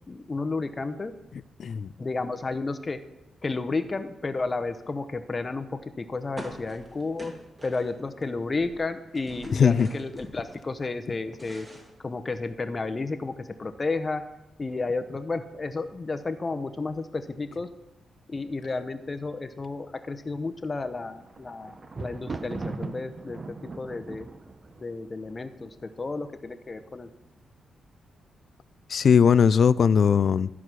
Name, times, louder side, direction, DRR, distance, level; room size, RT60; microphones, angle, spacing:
voice 1, 0.1-1.1 2.0-3.0 3.4-7.3 7.6-11.7 12.0-14.2 14.6-17.7 18.3-24.3 24.8-27.1, left 3 dB, 30° left, 0.8 m, -32 dB
voice 2, 1.6-1.9 9.5-9.9 28.9-30.5, left 7 dB, 60° left, 0.3 m, -19 dB
sound 1, 6.4-8.2 8.5-10.7 11.1-12.6, right 1 dB, 20° right, 2.0 m, -45 dB
Thunder, 20.9-26.1 26.8-27.3 27.6-27.7, right 3 dB, 35° right, 0.8 m, -39 dB
13.0 x 4.9 x 6.1 m
cardioid pair, 95°, 0 cm